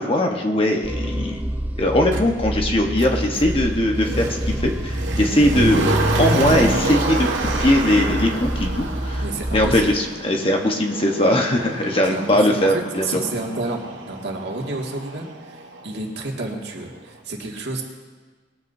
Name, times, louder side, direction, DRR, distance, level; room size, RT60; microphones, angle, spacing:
voice 1, 0.0-1.4 1.8-7.3 7.6-9.2 9.5-13.1, left 1 dB, 30° left, 2 dB, 1.1 m, -20 dB
sound 1, 0.8-10.0, equal, 10° right, 0.4 m, -28 dB
Motor vehicle (road), 2.1-2.2 3.0-15.9 16.2-16.3, right 2 dB, 90° right, 1.8 m, -28 dB
voice 2, 9.2-9.9 12.1-12.4 12.7-17.8, right 2 dB, 65° right, -1 dB, 2.1 m, -30 dB
21.0 x 13.5 x 2.7 m, 1.4 s
head